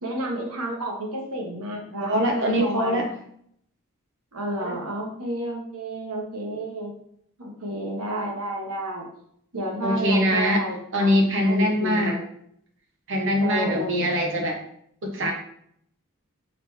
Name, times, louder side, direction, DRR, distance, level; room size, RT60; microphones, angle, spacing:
voice 1, 0.0-3.0 4.3-6.9 7.4-9.1 9.5-11.1 11.4-12.2 13.4-14.4, right 1 dB, 90° right, 0 dB, 1.3 m, -31 dB
voice 2, 2.0-3.1 4.6-4.7 9.8-10.6 10.9-12.2 13.1-14.6 15.0-15.3, equal, 60° right, 2 dB, 0.8 m, -23 dB
5.0 x 3.1 x 3.4 m, 0.68 s
head